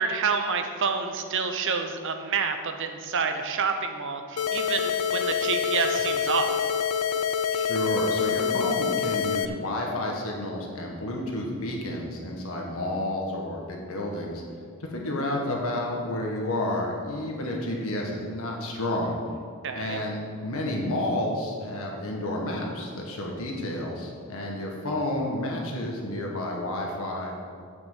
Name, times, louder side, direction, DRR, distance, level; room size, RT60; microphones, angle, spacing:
voice 1, 0.0-6.6 19.6-20.0, right 5 dB, 60° right, 6 dB, 0.9 m, -28 dB
sound 1, 4.4-9.5, left 7 dB, 85° left, 0.5 m, -26 dB
voice 2, 7.5-14.4 14.8-19.2 19.7-27.3, left 1 dB, 65° left, -1 dB, 1.7 m, -30 dB
8.9 x 6.1 x 7.4 m, 2.2 s
head